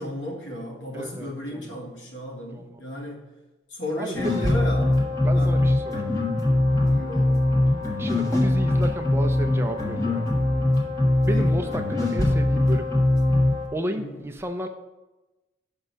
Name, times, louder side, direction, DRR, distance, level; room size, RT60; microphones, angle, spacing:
voice 1, 0.0-3.3 3.7-5.0 5.3-5.6 6.8-7.5 11.3-11.7 13.9-14.2, left 1 dB, 75° left, -1 dB, 1.9 m, -34 dB
voice 2, 0.9-1.8 2.5-2.8 4.0-4.5 5.2-6.1 8.0-10.3 11.2-12.9 13.7-14.7, right 1 dB, 15° right, 5 dB, 0.4 m, -32 dB
sound 1, 4.1-13.6, left 1 dB, 15° left, 1.4 m, -22 dB
6.0 x 5.4 x 6.7 m, 1.1 s
head